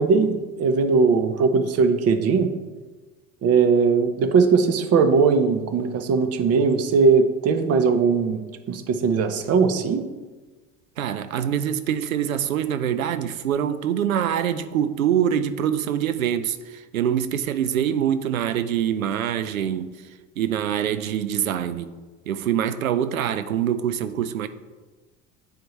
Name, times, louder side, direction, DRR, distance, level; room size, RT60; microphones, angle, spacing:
voice 1, 0.0-2.5 3.4-8.4 8.7-10.1, right 5 dB, 35° right, 0.8 m, -19 dB
voice 2, 11.0-19.9 20.4-21.9 22.3-24.5, right 9 dB, 85° right, 0.5 m, -24 dB
8.8 x 4.5 x 3.1 m
hypercardioid pair, 70°, 40 cm